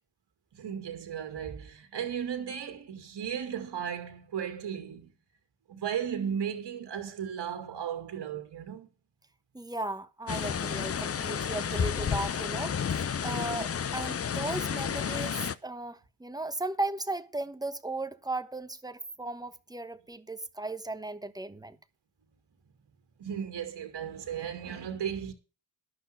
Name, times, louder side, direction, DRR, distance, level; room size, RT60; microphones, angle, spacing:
voice 1, 0.5-5.1 5.7-8.9 23.2-25.3, right 8 dB, 55° right, 2.1 m, -35 dB
voice 2, 9.5-21.8, right 2 dB, 10° right, 1.1 m, -36 dB
sound 1, 10.3-15.5, left 7 dB, 30° left, 0.7 m, -31 dB
11.5 x 5.8 x 7.8 m
hypercardioid pair, 50°, 50 cm